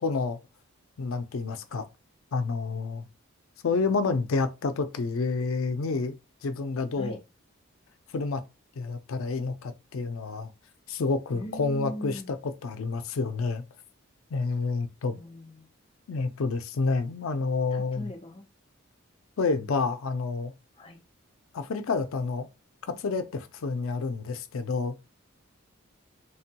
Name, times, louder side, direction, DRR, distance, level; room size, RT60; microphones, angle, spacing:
voice 1, 0.0-0.4 1.0-1.8 2.3-3.0 3.6-6.1 6.4-7.2 8.1-8.4 8.8-10.5 10.9-13.6 14.3-15.2 16.1-18.1 19.4-20.5 21.5-22.5 22.9-25.0, left 4 dB, 80° left, 0.5 m, -29 dB
voice 2, 11.3-12.3 15.2-15.7 17.7-18.5 20.8-21.0, equal, 25° left, 0.5 m, -40 dB
3.3 x 2.2 x 2.8 m
head